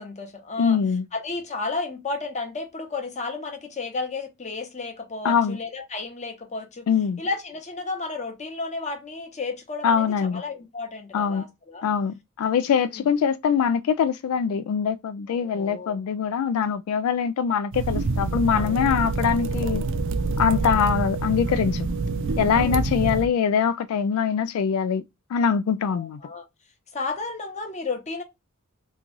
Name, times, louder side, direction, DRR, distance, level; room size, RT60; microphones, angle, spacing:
voice 1, 0.0-0.8 1.1-6.9 7.2-11.9 12.8-13.1 15.3-16.0 18.5-19.1 20.5-20.7 22.5-23.1 25.9-26.4 26.9-28.2, left 3 dB, 35° left, 0.9 m, -33 dB
voice 2, 0.6-1.1 5.2-5.6 6.9-7.2 9.8-10.4 11.1-11.5 11.8-19.8 20.4-21.9 22.4-25.0 25.3-26.2, left 7 dB, 90° left, 0.3 m, -23 dB
sound 1, 17.7-23.3, right 3 dB, 60° right, 0.4 m, -26 dB
3.1 x 2.3 x 3.8 m
head